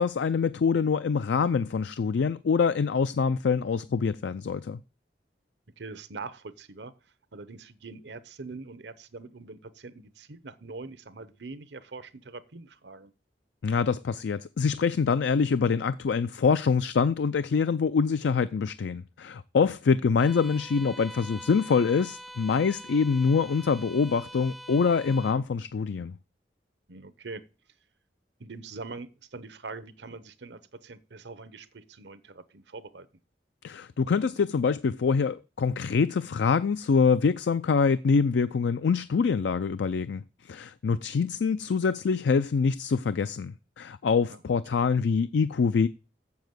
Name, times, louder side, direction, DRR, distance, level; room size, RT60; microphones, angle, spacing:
voice 1, 0.0-4.8 13.6-26.2 33.6-45.9, left 5 dB, 80° left, 0.4 m, -25 dB
voice 2, 5.8-6.9 7.3-13.1 26.9-27.4 28.4-33.1 44.3-44.4, right 3 dB, 75° right, 0.9 m, -43 dB
Bowed string instrument, 20.2-25.5, equal, ahead, 0.4 m, -45 dB
7.3 x 7.0 x 7.9 m
head